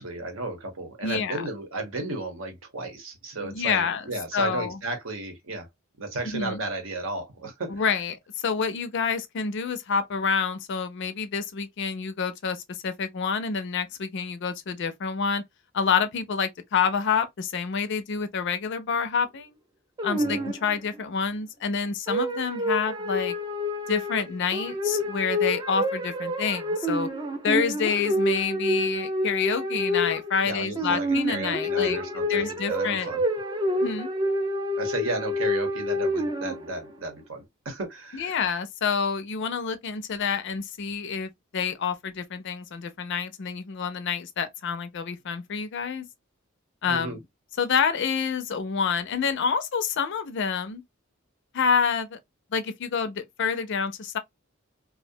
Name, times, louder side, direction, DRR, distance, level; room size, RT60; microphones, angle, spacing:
voice 1, 0.0-5.7 6.0-7.8 20.1-20.4 30.4-33.2 34.8-38.4 46.9-47.2, right 2 dB, 70° right, 0.9 m, -34 dB
voice 2, 1.0-1.4 3.4-4.0 4.3-4.8 6.2-6.6 7.7-15.4 15.7-19.6 20.0-23.3 23.9-27.1 27.4-32.0 32.3-33.1 33.8-34.1 38.1-46.1 46.8-47.2 47.6-50.8 51.5-52.2 52.5-54.2, left 6 dB, 60° left, 0.5 m, -28 dB
sound 1, 20.0-20.9 22.1-36.9, left 1 dB, 20° right, 0.4 m, -28 dB
2.5 x 2.1 x 2.6 m
head